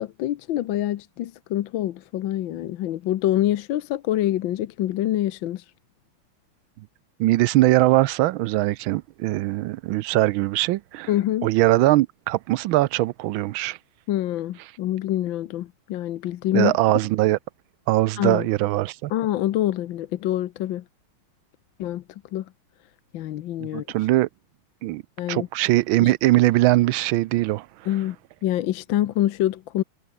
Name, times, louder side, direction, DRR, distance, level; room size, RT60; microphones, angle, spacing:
voice 1, 0.0-5.6 11.1-11.5 14.1-16.8 18.2-18.5 19.1-20.8 21.8-22.0 22.3-22.4 23.1-23.8 25.2-25.5 26.0-26.1 27.9-28.2 28.4-29.8, left 13 dB, 70° left, 1.5 m, -25 dB
voice 2, 7.2-11.1 11.4-13.8 16.5-17.4 17.9-19.1 23.6-24.3 24.8-25.0 25.3-27.7, right 17 dB, 75° right, 1.3 m, -21 dB
omnidirectional pair, 2.3 m